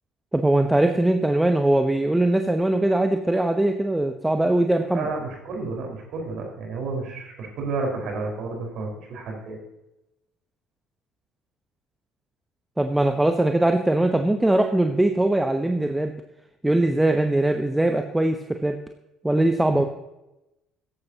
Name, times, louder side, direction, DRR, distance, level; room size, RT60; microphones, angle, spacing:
voice 1, 0.3-5.1 12.8-16.1 16.6-18.8 19.2-19.9, right 1 dB, 10° right, 6 dB, 1.0 m, -21 dB
voice 2, 4.9-9.6, right 3 dB, 50° right, 2 dB, 4.7 m, -31 dB
16.0 x 15.0 x 2.9 m, 0.93 s
figure-of-eight pair, 55°, 0 cm